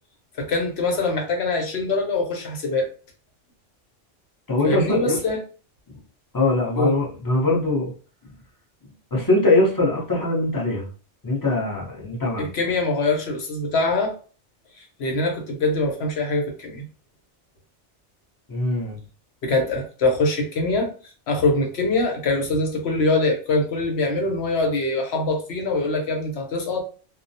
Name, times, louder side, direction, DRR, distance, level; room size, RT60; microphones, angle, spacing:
voice 1, 0.4-2.9 4.6-5.4 6.8-7.0 12.4-14.1 15.0-16.8 19.4-20.9 21.3-26.8, left 2 dB, 65° left, 2 dB, 0.9 m, -23 dB
voice 2, 4.5-5.2 6.3-7.9 9.1-10.9 11.2-12.5 18.5-19.0, left 2 dB, 25° left, -3 dB, 0.6 m, -22 dB
2.3 x 2.1 x 2.6 m, 0.38 s
omnidirectional pair, 1.2 m